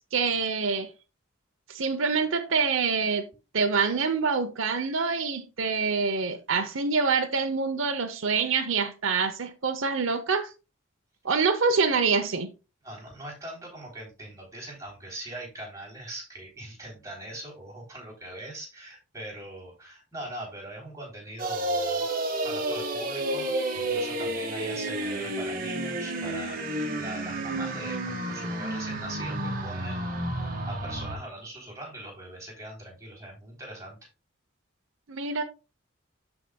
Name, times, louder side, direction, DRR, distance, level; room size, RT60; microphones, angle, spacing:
voice 1, 0.1-0.9 1.7-3.3 3.5-10.5 11.2-12.5 35.1-35.4, right 5 dB, 75° right, 0.8 m, -26 dB
voice 2, 12.8-22.0 22.4-34.0, right 1 dB, 15° right, 3.5 m, -41 dB
sound 1, 21.4-31.2, right 1 dB, 45° right, 1.6 m, -31 dB
13.0 x 4.9 x 2.3 m
head